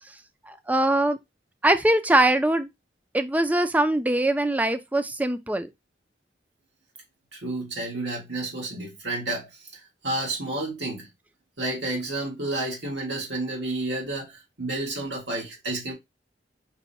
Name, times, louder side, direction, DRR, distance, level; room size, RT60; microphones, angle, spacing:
voice 1, 0.5-1.2 1.6-2.7 3.1-5.7, right 1 dB, 10° right, 0.4 m, -22 dB
voice 2, 7.3-11.1 11.6-15.9, right 2 dB, 85° right, 1.6 m, -31 dB
5.3 x 2.2 x 4.0 m
head